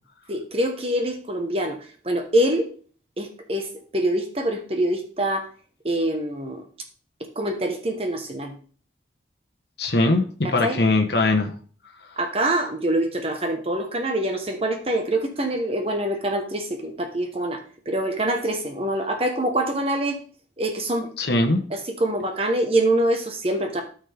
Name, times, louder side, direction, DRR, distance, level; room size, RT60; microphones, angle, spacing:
voice 1, 0.3-1.8 2.0-2.7 3.2-3.7 3.9-5.5 5.8-6.6 7.4-8.5 10.4-10.8 12.2-17.6 17.9-20.2 20.6-21.1 21.7-23.8, right 1 dB, 30° right, 4 dB, 1.1 m, -25 dB
voice 2, 9.8-11.5 21.2-21.6, left 2 dB, 60° left, 3 dB, 1.2 m, -21 dB
13.0 x 6.3 x 3.5 m, 0.43 s
head